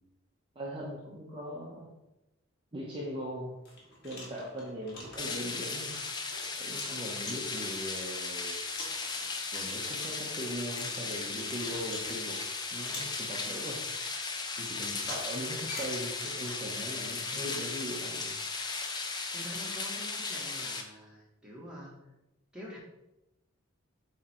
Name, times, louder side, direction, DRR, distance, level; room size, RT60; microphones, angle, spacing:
voice 1, 0.5-1.9 2.7-3.6 4.0-5.9 6.5-8.6 9.5-12.4 12.7-13.8 14.6-18.3 18.6-18.7, equal, 25° right, -5 dB, 1.0 m, -40 dB
sound 1, 3.0-3.1 3.6-7.8 8.2-8.3 8.7-12.4 12.8-13.8 14.9-16.8 17.9-18.1, left 2 dB, 50° left, 2.0 m, -46 dB
sound 2, 5.2-20.8, left 4 dB, 20° left, 0.5 m, -36 dB
voice 2, 19.3-21.9 22.5-22.8, equal, 5° right, -5 dB, 1.7 m, -46 dB
8.0 x 3.3 x 4.4 m, 0.93 s
head